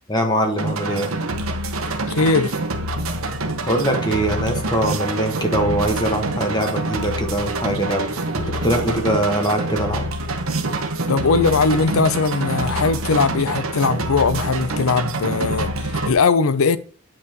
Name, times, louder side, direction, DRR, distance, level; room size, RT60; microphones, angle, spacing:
voice 1, 0.1-1.1 3.7-8.0 8.4-10.1, right 1 dB, 20° left, 1.5 m, -22 dB
sound 1, 0.6-16.1, right 2 dB, 80° right, 1.1 m, -26 dB
voice 2, 2.1-2.5 11.1-16.8, left 4 dB, 85° left, 0.6 m, -19 dB
9.2 x 5.6 x 3.0 m
head